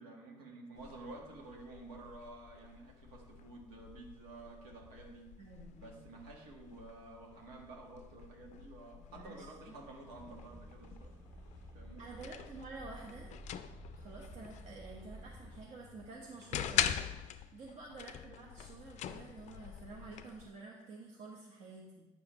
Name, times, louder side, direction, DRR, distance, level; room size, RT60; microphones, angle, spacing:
voice 1, 0.0-5.3 5.8-11.1 11.7-12.0, right 2 dB, 85° right, -1 dB, 1.5 m, -51 dB
sound 1, 0.7-20.5, left 10 dB, 60° left, 0.4 m, -44 dB
voice 2, 5.4-6.0 9.1-9.7 12.0-13.3 13.9-22.1, right 3 dB, 55° right, -2 dB, 1.0 m, -50 dB
sound 2, 10.1-15.6, right 1 dB, 35° right, 1.8 m, -52 dB
8.9 x 4.9 x 3.1 m, 1.1 s
supercardioid pair, 85°, 14 cm